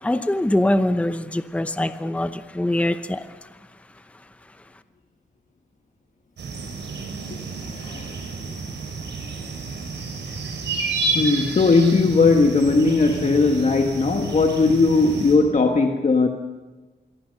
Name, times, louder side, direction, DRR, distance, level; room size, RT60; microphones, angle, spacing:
voice 1, 0.0-3.5, left 1 dB, 5° left, 10 dB, 0.8 m, -23 dB
sound 1, 6.4-15.4, right 3 dB, 80° right, 6.0 m, -30 dB
voice 2, 7.7-8.2 11.1-16.3, left 3 dB, 45° left, 4 dB, 1.6 m, -18 dB
26.5 x 23.0 x 6.6 m, 1.3 s
wide cardioid pair, 145°, 18 cm